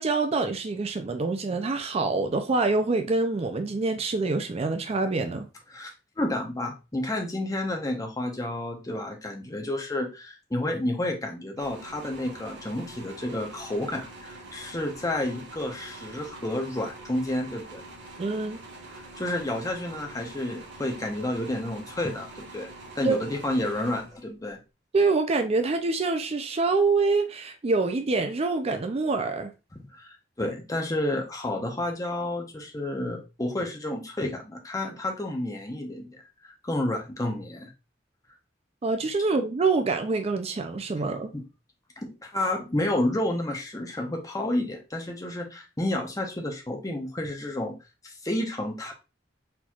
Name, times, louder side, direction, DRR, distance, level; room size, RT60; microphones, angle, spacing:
voice 1, 0.0-5.5 18.2-18.6 23.0-23.2 24.9-29.5 38.8-41.3, right 3 dB, 35° right, 0.4 m, -25 dB
voice 2, 5.7-17.8 19.2-22.7 22.9-24.6 29.9-36.2 36.6-37.7 41.3-41.4 42.0-47.7 48.0-48.9, left 1 dB, 20° left, 0.8 m, -30 dB
sound 1, 11.6-24.6, right 2 dB, 70° right, 1.3 m, -45 dB
4.4 x 4.2 x 2.4 m
head